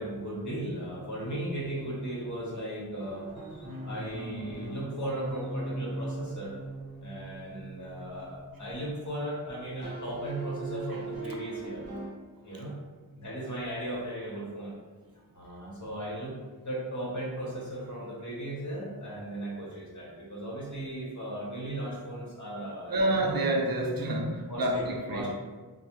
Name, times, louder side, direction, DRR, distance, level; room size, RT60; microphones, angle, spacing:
voice 1, 0.0-6.5 7.0-11.8 12.4-12.7 13.2-14.7 15.3-16.4 16.6-23.3 24.5-25.3, right 1 dB, 45° left, -5 dB, 1.0 m, -37 dB
sound 1, 3.0-9.5 9.8-12.1, right 2 dB, 40° right, 0.9 m, -40 dB
voice 2, 22.9-25.3, right 1 dB, 60° right, 1 dB, 0.5 m, -28 dB
3.1 x 2.0 x 3.0 m, 1.3 s
wide cardioid pair, 60°, 40 cm